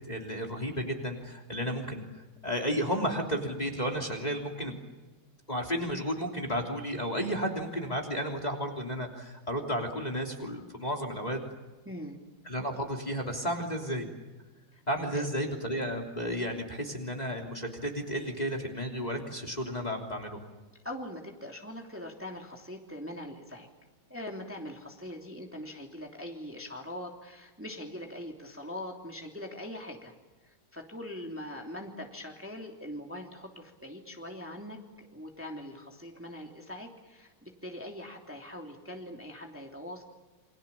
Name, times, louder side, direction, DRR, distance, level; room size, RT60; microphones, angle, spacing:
voice 1, 0.1-2.0 2.4-4.7 5.5-11.4 12.4-14.1 14.9-20.4, equal, 20° left, 1 dB, 3.2 m, -33 dB
voice 2, 11.8-12.2 14.7-14.8 15.1-15.3 20.8-23.7 24.1-30.1 30.4-40.0, left 1 dB, 5° right, 1 dB, 2.9 m, -42 dB
29.0 x 25.5 x 7.2 m, 1.2 s
omnidirectional pair, 2.2 m